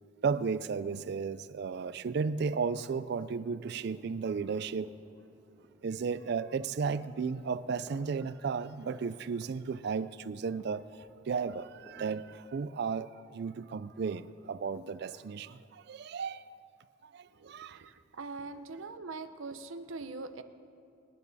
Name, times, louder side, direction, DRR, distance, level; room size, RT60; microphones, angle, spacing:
voice 1, 0.2-4.9 5.8-16.4 17.0-17.9, right 5 dB, 55° right, 0.4 m, -34 dB
sound 1, 3.0-12.2, right 1 dB, 15° right, 1.5 m, -62 dB
voice 2, 17.4-20.4, right 3 dB, 85° right, 0.7 m, -42 dB
26.0 x 11.0 x 4.1 m
head